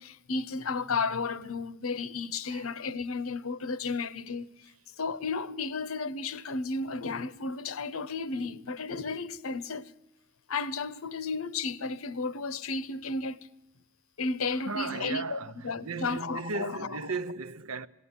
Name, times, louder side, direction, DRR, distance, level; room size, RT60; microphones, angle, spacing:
voice 1, 0.0-4.7 5.0-9.9 10.5-13.5 14.2-17.0, left 4 dB, 75° left, 0.9 m, -33 dB
voice 2, 14.5-17.9, right 4 dB, 80° right, 0.8 m, -36 dB
20.0 x 16.5 x 9.7 m
head